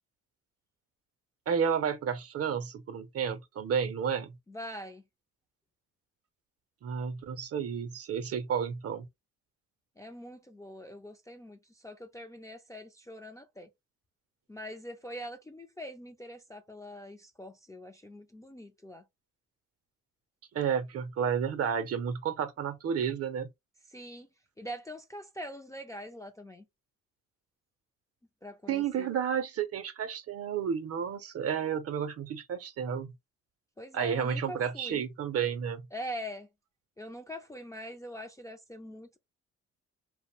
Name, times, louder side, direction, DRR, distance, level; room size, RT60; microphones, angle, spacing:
voice 1, 1.5-4.3 6.8-9.1 20.5-23.5 28.7-33.1 33.9-35.8, right 7 dB, 50° right, 0.6 m, -31 dB
voice 2, 4.5-5.0 10.0-13.7 14.5-19.0 23.9-24.3 24.6-26.7 28.4-29.1 33.8-35.0 35.9-36.5 37.0-39.2, equal, 10° left, 0.3 m, -43 dB
2.5 x 2.1 x 2.8 m
cardioid pair, 90°, 30 cm